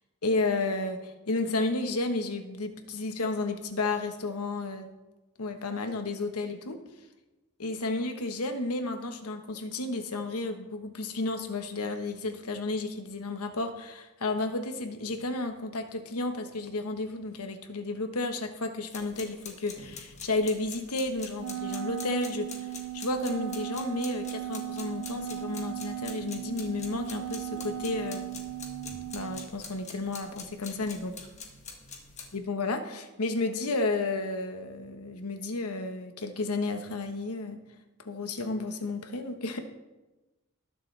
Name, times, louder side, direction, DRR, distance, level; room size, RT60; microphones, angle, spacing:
voice 1, 0.2-4.9 5.4-6.8 7.6-22.7 22.9-28.3 29.1-31.2 32.3-37.6 38.0-39.6, left 2 dB, 90° left, 6 dB, 1.2 m, -32 dB
sound 1, 18.9-32.4, left 4 dB, 30° left, 1.7 m, -46 dB
Wind instrument woodwind instrument, 21.4-29.5, right 13 dB, 90° right, 0.5 m, -37 dB
20.5 x 7.0 x 3.4 m, 1.1 s
head